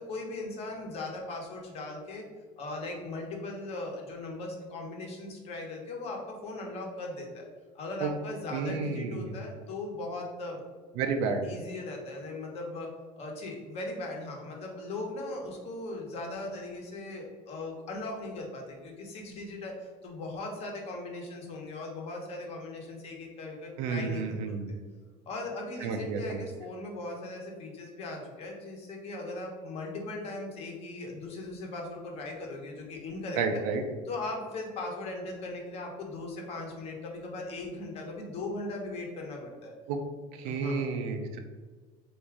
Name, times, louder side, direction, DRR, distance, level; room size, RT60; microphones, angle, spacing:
voice 1, 0.0-2.2 2.6-7.4 7.7-10.6 11.4-12.9 13.2-24.8 25.3-33.6 34.0-39.7 40.4-40.9, left 2 dB, 45° left, 1 dB, 1.1 m, -39 dB
voice 2, 8.5-9.3 11.0-11.5 23.8-24.7 25.8-26.4 33.4-33.8 39.9-40.0 40.3-41.4, right 5 dB, 80° right, 5 dB, 0.6 m, -31 dB
3.6 x 2.7 x 4.7 m, 1.4 s
cardioid pair, 150°, 14 cm